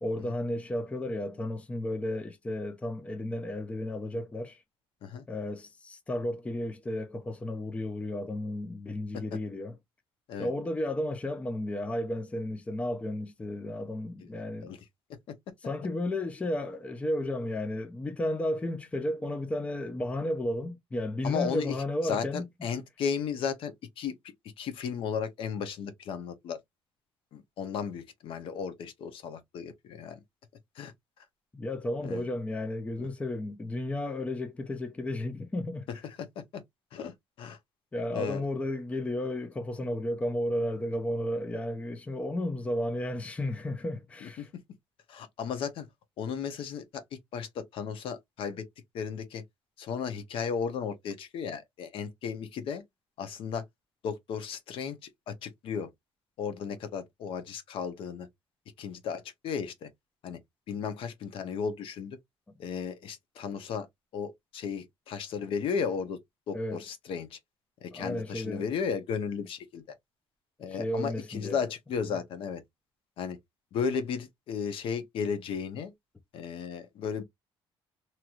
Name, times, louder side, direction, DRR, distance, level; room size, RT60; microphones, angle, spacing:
voice 1, 0.0-4.6 5.3-9.8 10.4-14.8 15.6-22.5 31.5-35.9 37.9-44.5 66.5-66.8 67.9-68.7 70.7-71.6, left 1 dB, 15° left, 0.5 m, -33 dB
voice 2, 21.2-21.7 22.0-24.2 24.6-26.6 27.3-30.2 30.8-30.9 32.0-32.2 33.0-33.1 35.9-36.6 36.9-37.6 38.1-38.4 44.2-44.6 45.1-45.9 46.2-47.0 47.3-48.6 48.9-49.4 49.8-52.8 53.2-53.6 54.0-55.9 56.4-58.3 58.8-59.9 60.2-60.4 60.7-62.2 62.6-63.9 64.1-66.2 66.5-67.4 67.8-69.8 70.6-72.6 73.2-73.4 73.7-75.9 76.3-77.2, left 6 dB, 65° left, 0.8 m, -35 dB
3.0 x 2.9 x 2.4 m
cardioid pair, 145°, 10 cm